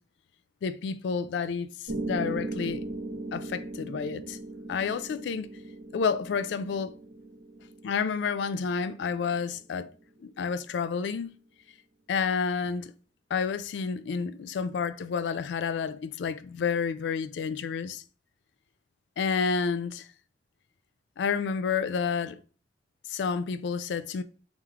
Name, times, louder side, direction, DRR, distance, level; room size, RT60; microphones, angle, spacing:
voice 1, 0.6-2.8 3.3-4.4 4.7-5.5 5.9-7.0 7.8-9.9 10.2-11.4 12.1-12.9 13.3-18.0 19.2-20.1 21.2-22.4 23.1-24.2, left 5 dB, 80° left, 0.3 m, -30 dB
Piano, 1.9-9.9, right 2 dB, 80° right, 0.9 m, -38 dB
3.6 x 3.0 x 2.9 m
head